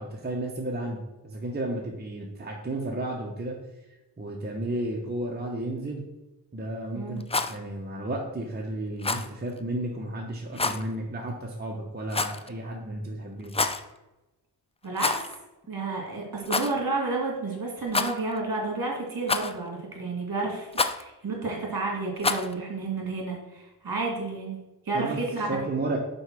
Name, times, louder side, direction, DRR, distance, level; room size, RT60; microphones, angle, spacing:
voice 1, 0.0-3.6 4.2-6.1 6.5-13.5 24.9-25.2 25.5-26.0, right 1 dB, 25° right, 0 dB, 0.9 m, -33 dB
Rattle, 7.2-7.6 9.0-9.3 10.5-10.8 12.1-12.5 13.4-13.8 14.9-15.4 15.6-15.7 16.4-16.7 17.9-18.4 19.3-19.7 20.7-21.0 22.2-22.5, left 3 dB, 15° left, 0.3 m, -27 dB
voice 2, 14.8-15.3 15.7-24.6 24.9-25.5, right 3 dB, 55° right, 0 dB, 2.3 m, -31 dB
5.4 x 4.6 x 6.1 m, 1.0 s
wide cardioid pair, 95°, 41 cm